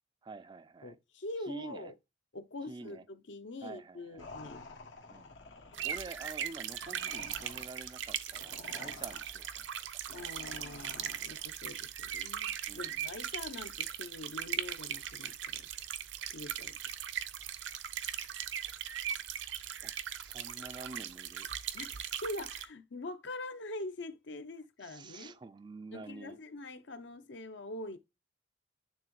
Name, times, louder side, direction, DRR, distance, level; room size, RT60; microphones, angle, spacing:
voice 1, 0.2-1.0 1.5-1.9 2.7-3.0 3.6-4.3 5.1-5.3 5.8-9.7 12.7-13.0 19.8-21.5 24.8-26.4, right 3 dB, 25° right, 0.3 m, -48 dB
voice 2, 0.8-1.9 2.3-4.7 10.1-15.7 16.3-16.8 21.7-25.4 25.9-28.0, left 2 dB, 70° left, 0.7 m, -44 dB
sound 1, 4.2-11.6, left 3 dB, 85° left, 1.1 m, -51 dB
sound 2, 5.7-22.7, right 9 dB, 75° right, 0.6 m, -39 dB
9.0 x 3.5 x 3.1 m
head